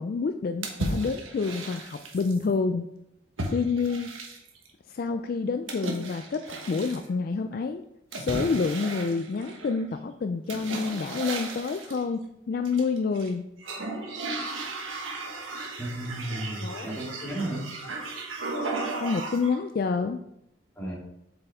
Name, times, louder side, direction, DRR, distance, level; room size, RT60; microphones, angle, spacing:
voice 1, 0.0-2.9 3.5-4.1 4.9-7.8 8.1-13.4 16.6-16.9 19.0-20.2, left 4 dB, 50° left, 8 dB, 0.3 m, -28 dB
sound 1, 0.6-2.4 3.4-4.7 5.7-7.1 8.1-9.8 10.5-12.0 12.6-13.3 13.6-19.6, right 2 dB, 85° right, 1.4 m, -35 dB
voice 2, 15.8-18.0 20.8-20.9, right 1 dB, 10° left, -5 dB, 2.3 m, -34 dB
7.8 x 5.7 x 3.5 m, 0.81 s
head